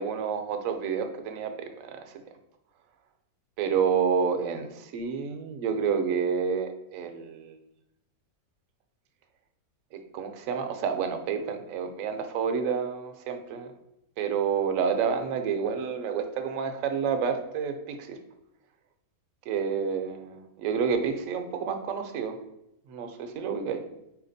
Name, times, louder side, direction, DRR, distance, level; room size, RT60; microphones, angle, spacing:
voice 1, 0.0-2.0 3.6-7.6 9.9-13.7 14.2-18.2 19.5-22.4 22.9-23.8, right 6 dB, 70° right, 6 dB, 0.9 m, -29 dB
4.4 x 2.8 x 3.9 m, 0.86 s
omnidirectional pair, 1.6 m